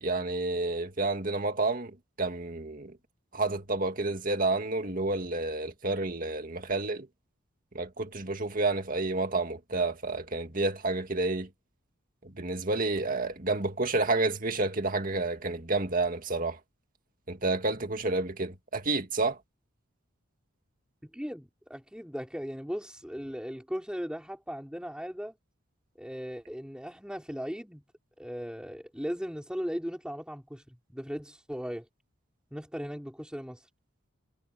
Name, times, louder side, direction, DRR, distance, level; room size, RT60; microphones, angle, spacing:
voice 1, 0.0-2.9 3.3-7.1 7.7-11.5 12.2-16.6 17.3-19.4, right 2 dB, 40° right, 2.1 m, -30 dB
voice 2, 21.0-25.3 26.0-27.8 28.2-31.9 32.5-33.7, equal, 5° right, 5.7 m, -38 dB
head